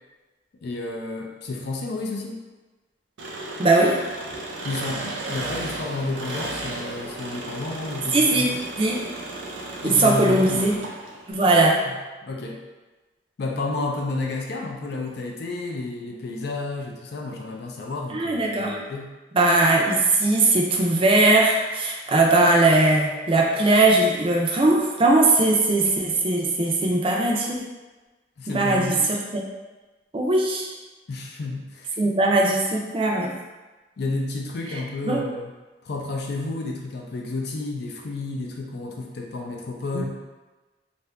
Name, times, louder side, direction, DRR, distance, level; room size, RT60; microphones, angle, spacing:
voice 1, 0.6-2.4 4.6-8.6 9.8-10.8 11.5-12.0 12.2-12.6 13.4-19.1 28.4-29.1 31.1-31.9 34.0-35.5 35.8-40.1, left 2 dB, 60° left, 0 dB, 0.4 m, -31 dB
Engine, 3.2-11.3, right 2 dB, 90° right, 0.5 m, -34 dB
voice 2, 3.6-4.0 8.1-8.5 8.8-9.0 9.8-10.8 11.3-11.7 18.1-18.8 19.3-27.7 28.5-29.4 30.1-30.7 32.0-33.3 35.0-35.2 39.9-40.1, right 2 dB, 30° right, -1 dB, 0.4 m, -19 dB
2.7 x 2.5 x 3.3 m, 1.2 s
head